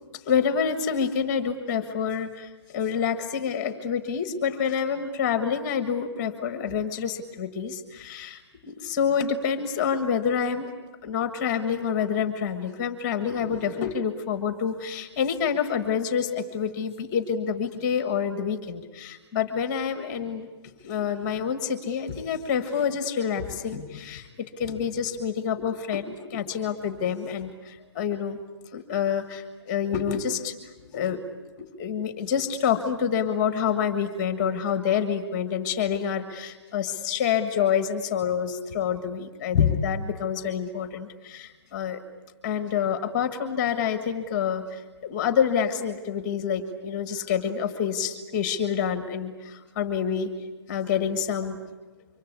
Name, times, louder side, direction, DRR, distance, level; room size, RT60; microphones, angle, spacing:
voice 1, 0.2-10.7 11.0-20.5 20.8-28.4 28.7-30.5 30.8-31.2 31.6-42.0 42.4-50.3 50.7-51.6, left 7 dB, 15° left, 9 dB, 1.5 m, -27 dB
26.0 x 24.5 x 8.3 m, 1.2 s
hypercardioid pair, 175°, 15 cm